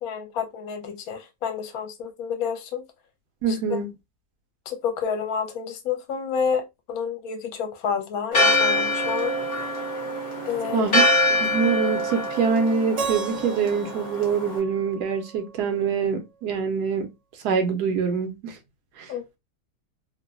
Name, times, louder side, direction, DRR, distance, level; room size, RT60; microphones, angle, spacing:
voice 1, 0.0-2.8 3.5-3.8 4.7-9.4 10.5-10.9 19.1-19.4, left 6 dB, 70° left, 1.1 m, -29 dB
voice 2, 3.4-3.9 10.7-11.0 11.4-17.1 17.4-18.6 19.0-19.1, right 5 dB, 80° right, 1.1 m, -25 dB
Church bell, 8.3-14.6, left 1 dB, 50° left, 0.7 m, -24 dB
Keyboard (musical), 13.0-15.9, right 5 dB, 60° right, 0.9 m, -36 dB
2.9 x 2.1 x 2.4 m
omnidirectional pair, 1.7 m